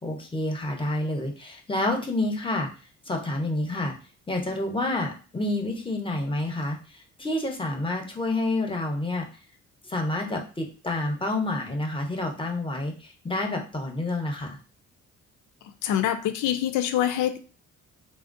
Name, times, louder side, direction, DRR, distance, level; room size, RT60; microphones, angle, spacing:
voice 1, 0.0-2.7 3.1-3.9 4.3-9.3 9.8-14.6, left 2 dB, 15° left, 2 dB, 0.8 m, -29 dB
voice 2, 15.8-17.4, left 11 dB, 90° left, 9 dB, 0.5 m, -25 dB
3.6 x 2.0 x 2.5 m, 0.35 s
cardioid pair, 90°, 30 cm